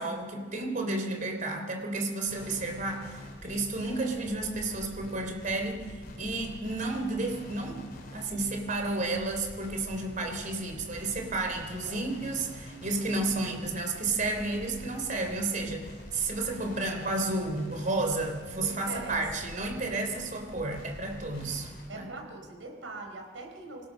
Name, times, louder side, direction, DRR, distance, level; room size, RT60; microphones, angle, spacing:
voice 1, 0.0-21.7 21.9-22.1, right 2 dB, 40° right, 4 dB, 3.7 m, -32 dB
sound 1, 2.3-21.9, equal, 50° left, 3.6 m, -46 dB
voice 2, 11.8-12.1 18.6-19.5 21.3-21.5 21.9-23.9, right 2 dB, 85° right, 3 dB, 5.0 m, -42 dB
26.5 x 17.0 x 6.5 m, 1.5 s
head